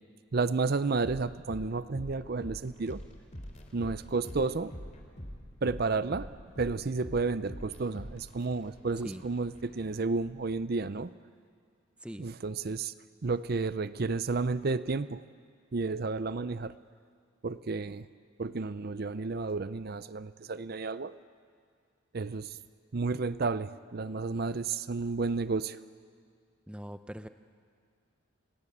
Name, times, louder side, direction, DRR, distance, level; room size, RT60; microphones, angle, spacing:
voice 1, 0.3-3.0 3.7-4.7 5.6-6.3 6.6-11.1 12.2-12.9 13.2-15.2 15.7-16.8 17.4-18.1 18.4-21.1 22.1-22.6 22.9-25.8, right 3 dB, 45° right, 14 dB, 0.5 m, -31 dB
sound 1, 1.0-10.6, equal, 35° left, 3.1 m, -45 dB
voice 2, 26.7-27.3, equal, 5° right, 9 dB, 0.6 m, -41 dB
29.0 x 18.0 x 8.6 m, 2.1 s
head